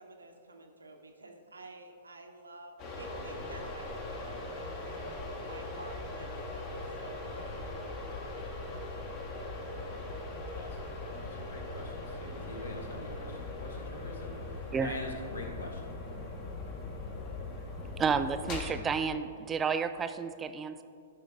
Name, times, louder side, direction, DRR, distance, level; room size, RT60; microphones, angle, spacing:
voice 1, 0.0-5.0 5.4-8.0, right 2 dB, 80° right, 3 dB, 1.0 m, -50 dB
sound 1, 2.8-18.7, left 2 dB, 35° left, 1.4 m, -40 dB
voice 2, 10.5-11.0 11.2-16.0, left 2 dB, 70° left, 2 dB, 1.4 m, -44 dB
voice 3, 18.0-20.8, right 6 dB, 15° right, 11 dB, 0.3 m, -31 dB
12.0 x 5.6 x 3.7 m, 2.4 s
figure-of-eight pair, 110°, 0 cm